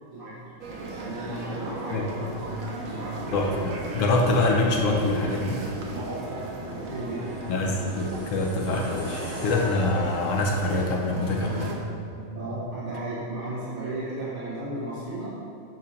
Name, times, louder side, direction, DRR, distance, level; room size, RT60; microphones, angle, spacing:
voice 1, 0.1-0.5 1.0-3.2 5.9-7.3 12.3-15.3, right 2 dB, 45° right, -9 dB, 1.3 m, -35 dB
sound 1, 0.6-11.8, right 2 dB, 90° right, 1.2 m, -36 dB
sound 2, 2.1-12.9, equal, 10° left, 1.1 m, -42 dB
voice 2, 3.3-5.6 7.5-11.7, left 2 dB, 80° left, 0 dB, 1.1 m, -25 dB
sound 3, 7.4-10.6, left 1 dB, 15° right, 0.6 m, -42 dB
7.8 x 2.9 x 5.0 m, 2.6 s
omnidirectional pair, 1.3 m